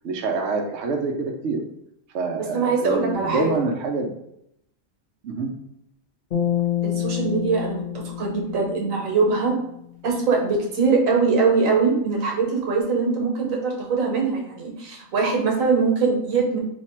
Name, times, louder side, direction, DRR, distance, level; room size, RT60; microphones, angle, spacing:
voice 1, 0.0-1.6 2.1-4.1 5.2-5.5, right 4 dB, 65° right, 2 dB, 0.9 m, -26 dB
voice 2, 2.5-3.6 6.8-7.8 8.2-9.6 10.0-16.6, right 4 dB, 90° right, 0 dB, 1.2 m, -22 dB
sound 1, 6.3-9.7, left 10 dB, 45° left, 1.0 m, -28 dB
3.2 x 2.2 x 4.2 m, 0.77 s
omnidirectional pair, 1.4 m